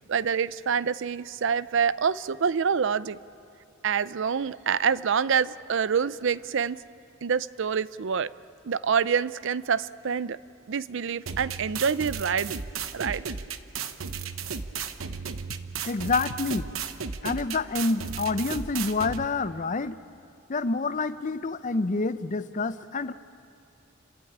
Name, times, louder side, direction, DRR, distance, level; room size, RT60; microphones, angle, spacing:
voice 1, 0.1-3.2 3.8-6.8 7.2-8.3 8.6-10.4 10.7-12.5 12.9-13.2, right 6 dB, 65° right, 17 dB, 0.5 m, -26 dB
sound 1, 11.3-19.3, right 6 dB, 90° right, 0.9 m, -35 dB
voice 2, 15.9-16.7 17.2-20.0 20.5-23.1, left 3 dB, 40° left, 13 dB, 0.6 m, -28 dB
30.0 x 13.5 x 8.8 m, 2.5 s
head